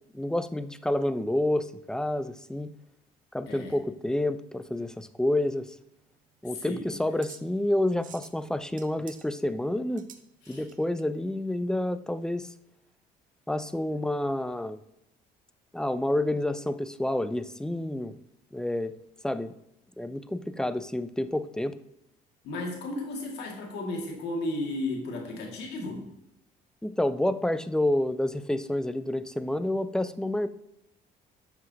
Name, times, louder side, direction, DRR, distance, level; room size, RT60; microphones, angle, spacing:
voice 1, 0.1-2.7 3.3-5.7 6.4-10.1 10.5-12.5 13.5-14.8 15.7-18.2 18.5-18.9 19.2-19.5 20.0-21.8 26.8-30.5, left 1 dB, 5° left, 13 dB, 0.3 m, -29 dB
voice 2, 3.5-3.8 6.4-7.0 10.4-10.6 20.6-20.7 22.4-26.1, left 2 dB, 80° left, 0 dB, 2.1 m, -34 dB
sound 1, 5.8-11.0, right 9 dB, 50° right, 0.7 m, -52 dB
9.5 x 5.9 x 2.8 m, 0.80 s
cardioid pair, 110°, 17 cm